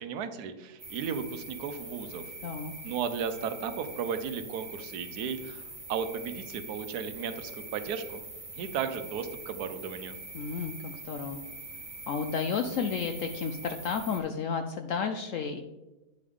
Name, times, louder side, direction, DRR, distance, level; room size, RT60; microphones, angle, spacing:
voice 1, 0.0-2.3 2.8-5.6 5.9-8.2 8.5-10.2, right 7 dB, 75° right, 10 dB, 1.1 m, -35 dB
sound 1, 0.8-14.2, right 2 dB, 20° right, 1.2 m, -44 dB
voice 2, 2.4-2.7 10.3-11.4 12.1-15.6, left 6 dB, 70° left, 6 dB, 0.7 m, -32 dB
9.3 x 5.0 x 3.5 m, 1.1 s
omnidirectional pair, 1.8 m